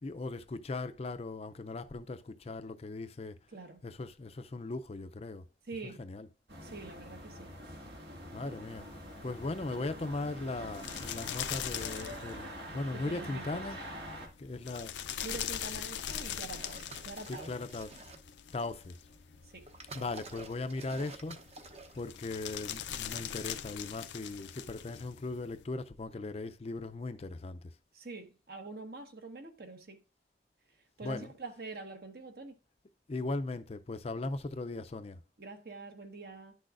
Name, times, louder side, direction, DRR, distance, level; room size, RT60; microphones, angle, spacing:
voice 1, 0.0-3.4 3.8-5.4 5.8-6.3 8.3-8.9 9.2-13.8 14.4-14.9 17.3-17.9 18.5-19.0 19.9-21.4 21.9-27.6 31.0-31.3 33.1-35.2, left 2 dB, 35° left, 0.4 m, -38 dB
voice 2, 5.6-6.1 6.6-7.5 12.9-13.6 15.2-17.8 19.5-19.7 27.9-30.0 31.0-32.6 35.4-36.6, right 3 dB, 60° right, 1.2 m, -45 dB
sound 1, 6.5-14.3, equal, 80° right, 2.0 m, -45 dB
sound 2, 8.7-25.6, left 9 dB, 90° left, 0.5 m, -43 dB
sound 3, 16.5-18.4 19.1-22.1, right 3 dB, 35° right, 0.8 m, -50 dB
10.5 x 6.3 x 2.5 m
head